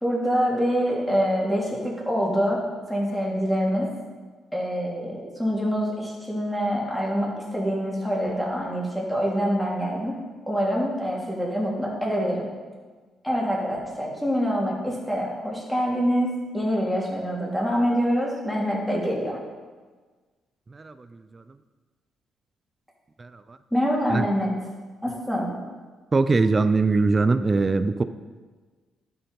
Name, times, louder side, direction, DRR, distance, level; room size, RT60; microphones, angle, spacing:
voice 1, 0.0-2.6 2.9-3.9 4.5-10.2 10.5-12.5 13.2-19.4 23.7-24.5 25.0-25.5, equal, 5° left, -4 dB, 3.2 m, -25 dB
voice 2, 23.2-23.6 24.1-24.2 26.1-28.0, right 3 dB, 30° right, 12 dB, 0.5 m, -21 dB
11.5 x 6.9 x 5.4 m, 1.4 s
cardioid pair, 90°, 0 cm